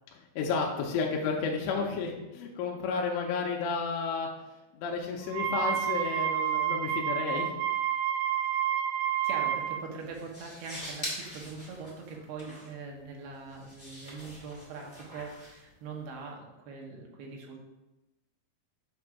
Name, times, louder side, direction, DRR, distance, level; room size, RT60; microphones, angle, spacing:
voice 1, 0.4-4.3 4.7-7.6, left 5 dB, 85° left, 0 dB, 2.9 m, -31 dB
Wind instrument woodwind instrument, 5.3-9.8, right 10 dB, 90° right, 2.9 m, -29 dB
voice 2, 9.2-17.6, right 4 dB, 75° right, -1 dB, 2.6 m, -42 dB
sound 1, 9.4-16.3, equal, 55° left, 0.5 m, -44 dB
7.5 x 2.6 x 5.8 m, 0.98 s
omnidirectional pair, 5.2 m